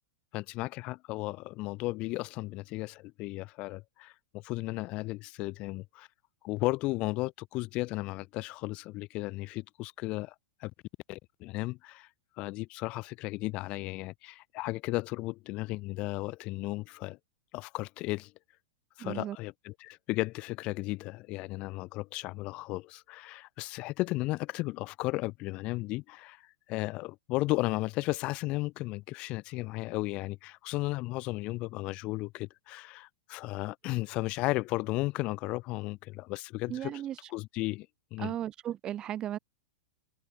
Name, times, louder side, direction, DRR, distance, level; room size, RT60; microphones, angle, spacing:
voice 1, 0.3-6.1 6.4-10.3 10.6-10.7 11.1-12.1 12.4-17.2 17.5-18.3 19.0-36.9 37.3-38.3, left 21 dB, 35° left, 4.3 m, -35 dB
voice 2, 19.0-19.4 36.7-37.2 38.2-39.4, right 11 dB, 25° right, 3.3 m, -35 dB
supercardioid pair, 145°, 3 cm